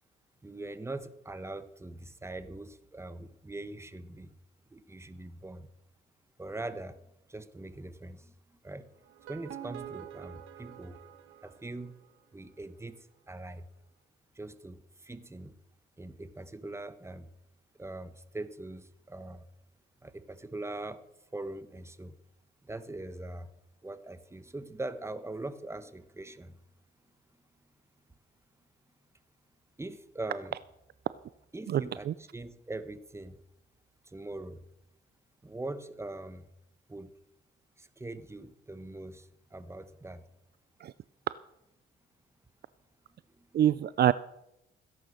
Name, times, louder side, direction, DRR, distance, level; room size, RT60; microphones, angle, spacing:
voice 1, 0.4-4.3 4.7-5.7 6.4-7.0 7.3-8.3 8.6-8.9 9.3-11.0 11.4-12.0 12.3-13.7 14.3-15.5 16.0-17.3 17.8-19.4 20.0-21.0 21.3-22.2 22.6-23.5 23.8-26.6 29.8-30.5 31.5-33.4 34.0-34.6 35.4-36.5 36.9-37.1 37.8-40.3 43.3-43.5, right 2 dB, 15° right, 12 dB, 1.3 m, -42 dB
sound 1, 9.0-12.2, right 10 dB, 85° right, 1.6 m, -46 dB
voice 2, 31.7-32.1 40.8-40.9 43.5-44.1, right 11 dB, 55° right, 16 dB, 0.5 m, -25 dB
16.0 x 10.5 x 6.5 m, 0.82 s
cardioid pair, 90°, 20 cm